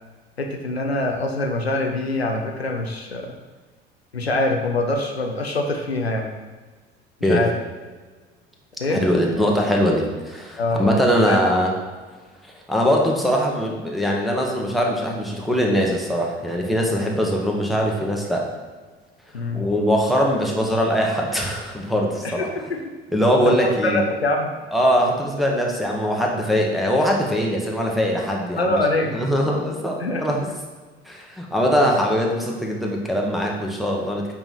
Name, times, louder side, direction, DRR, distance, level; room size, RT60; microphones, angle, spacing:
voice 1, 0.4-3.3 4.1-6.3 7.2-7.5 8.8-9.0 10.6-11.4 19.3-19.6 22.2-22.8 23.4-24.5 28.6-29.1 30.0-30.2, left 2 dB, 85° left, 2 dB, 0.7 m, -24 dB
voice 2, 8.9-11.7 12.7-18.4 19.5-22.5 23.1-24.0 24.7-28.8 29.1-30.5 31.0-34.3, equal, ahead, -1 dB, 1.3 m, -21 dB
8.9 x 3.6 x 4.3 m, 1.4 s
figure-of-eight pair, 60°, 31 cm